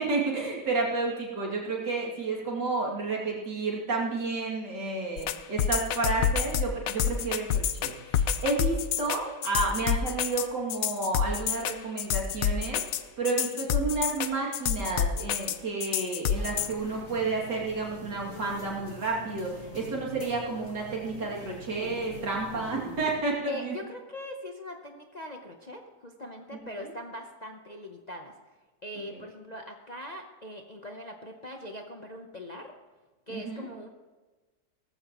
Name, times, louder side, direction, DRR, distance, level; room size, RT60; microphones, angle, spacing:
voice 1, 0.0-23.7 33.3-33.6, right 3 dB, 80° right, -3 dB, 3.2 m, -31 dB
sound 1, 5.2-16.7, left 9 dB, 65° left, 0.9 m, -28 dB
sound 2, 16.3-23.1, left 1 dB, 50° left, 4.3 m, -44 dB
voice 2, 23.5-28.4 28.8-32.7 33.3-33.9, left 1 dB, 35° left, 2 dB, 0.7 m, -41 dB
18.0 x 15.0 x 3.0 m, 1.2 s
omnidirectional pair, 1.8 m